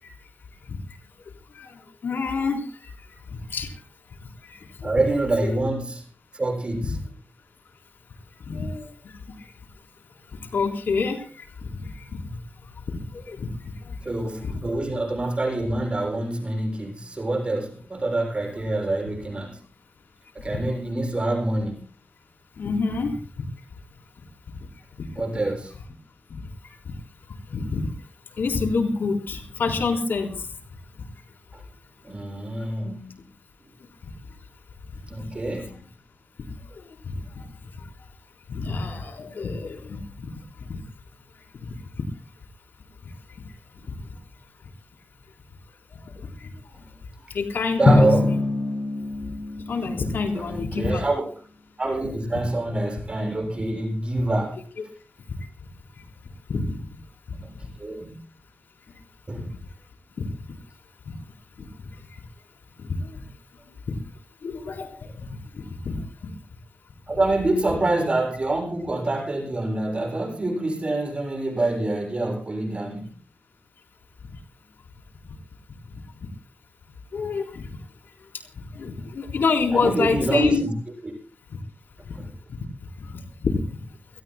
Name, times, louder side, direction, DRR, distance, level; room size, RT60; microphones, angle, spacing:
voice 1, 1.5-2.9 3.3-3.7 4.4-5.0 8.5-8.9 10.5-12.2 12.9-14.0 14.4-14.5 22.6-23.2 25.0-25.1 27.5-27.9 28.4-30.4 37.3-37.5 38.5-40.3 40.7-40.8 41.6-41.8 45.9-46.5 47.3-48.1 49.7-51.1 56.5-56.8 60.2-60.3 61.1-61.2 62.8-63.1 63.9-64.0 64.4-65.1 65.6-66.3 77.1-77.6 78.6-80.6 82.1-82.2 82.5-82.6 83.0-83.6, left 4 dB, 80° left, 3 dB, 3.8 m, -28 dB
voice 2, 4.8-6.0 6.3-7.0 14.0-19.6 20.3-21.8 25.2-25.7 31.5-31.6 32.0-33.3 35.1-35.8 47.8-48.4 50.3-51.3 51.8-54.6 57.3-58.1 59.3-59.5 67.1-73.1 79.7-80.7 81.0-81.1 82.1-82.3, right 2 dB, 30° right, 1 dB, 7.4 m, -26 dB
Drum, 47.9-50.6, left 2 dB, 45° left, 3.6 m, -22 dB
29.5 x 18.0 x 2.2 m, 0.39 s
wide cardioid pair, 105°, 3 cm